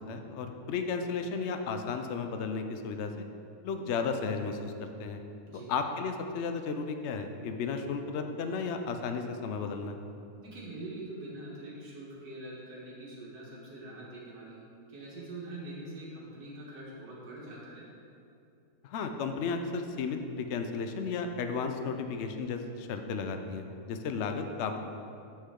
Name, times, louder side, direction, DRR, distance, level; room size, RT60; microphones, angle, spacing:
voice 1, 0.1-3.1 3.6-5.2 5.7-9.9 18.8-24.8, left 5 dB, 70° left, 6 dB, 0.6 m, -34 dB
voice 2, 10.4-17.8, right 2 dB, 70° right, -5 dB, 1.9 m, -44 dB
8.2 x 6.7 x 3.7 m, 2.6 s
omnidirectional pair, 1.8 m